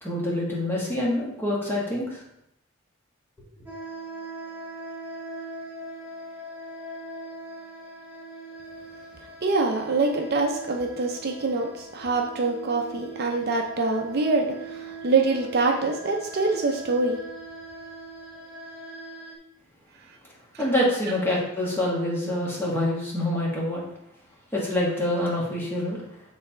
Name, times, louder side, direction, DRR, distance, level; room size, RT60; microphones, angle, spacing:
voice 1, 0.0-2.2 20.6-23.8 24.5-26.0, left 1 dB, 10° left, -4 dB, 1.3 m, -26 dB
sound 1, 3.7-19.4, right 2 dB, 10° right, 0.7 m, -41 dB
voice 2, 9.4-17.2, right 3 dB, 45° right, 2 dB, 0.5 m, -25 dB
6.7 x 3.3 x 4.4 m, 0.81 s
head